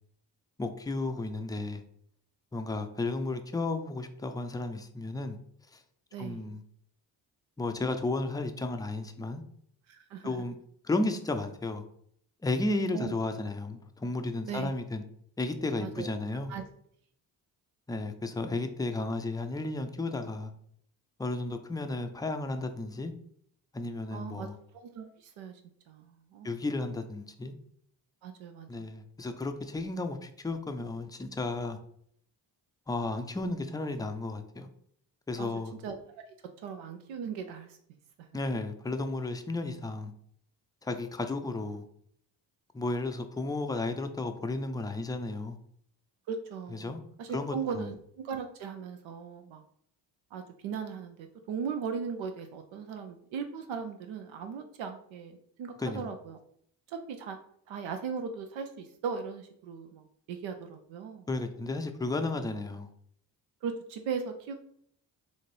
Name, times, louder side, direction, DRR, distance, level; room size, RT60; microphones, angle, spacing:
voice 1, 0.6-1.8 2.5-5.4 5.7-5.8 6.2-6.6 7.6-9.4 10.2-10.6 10.8-11.8 12.4-15.0 15.4-16.5 17.9-20.5 21.2-23.1 23.7-24.6 26.4-27.5 28.7-31.8 32.9-34.7 35.3-35.7 38.3-40.1 40.8-41.8 42.7-45.6 46.7-47.0 47.3-47.9 55.8-56.1 61.3-62.9, left 2 dB, 10° left, 0.4 m, -33 dB
voice 2, 6.1-6.5 9.9-10.3 12.9-13.1 14.5-14.7 15.8-16.1 16.5-16.6 24.1-24.5 24.9-25.6 25.9-26.6 28.2-28.9 35.4-35.5 35.8-35.9 36.6-37.8 38.2-38.3 46.3-48.0 48.2-49.6 50.3-56.4 56.9-57.4 57.7-61.3 63.6-64.5, right 6 dB, 75° right, 0.6 m, -38 dB
4.0 x 2.6 x 3.3 m
supercardioid pair, 55°, 47 cm